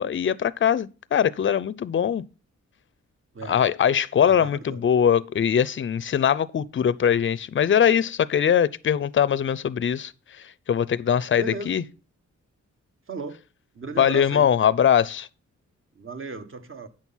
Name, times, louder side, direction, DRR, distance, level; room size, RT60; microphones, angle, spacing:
voice 1, 0.0-2.2 3.5-11.8 14.0-15.3, left 8 dB, 40° left, 0.5 m, -22 dB
voice 2, 4.2-4.8 11.4-11.8 13.1-13.4 13.7-14.5 15.9-16.9, right 4 dB, 45° right, 1.2 m, -36 dB
8.7 x 6.2 x 5.6 m
cardioid pair, 75°, 30 cm